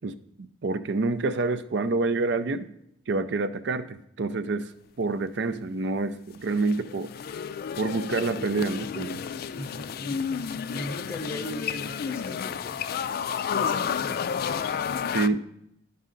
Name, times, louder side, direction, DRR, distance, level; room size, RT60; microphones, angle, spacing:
voice 1, 0.0-2.7 3.1-4.7 5.0-7.1 7.8-9.2 15.1-15.5, right 3 dB, 65° right, 12 dB, 0.5 m, -27 dB
sound 1, 6.3-15.3, left 7 dB, 55° left, 0.3 m, -31 dB
voice 2, 9.6-12.9 13.5-14.3, left 1 dB, 15° left, 4 dB, 0.6 m, -38 dB
11.0 x 5.5 x 3.8 m, 0.80 s
head